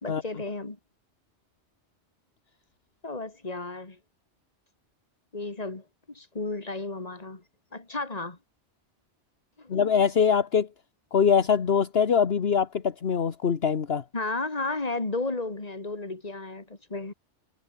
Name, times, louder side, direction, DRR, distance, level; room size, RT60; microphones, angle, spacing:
voice 1, 0.0-0.8 3.0-4.0 5.3-7.4 7.7-8.4 9.6-9.7 14.1-17.1, left 2 dB, 35° left, 2.6 m, -33 dB
voice 2, 9.7-10.7 11.1-14.0, left 7 dB, 60° left, 1.4 m, -23 dB
omnidirectional pair, 1.2 m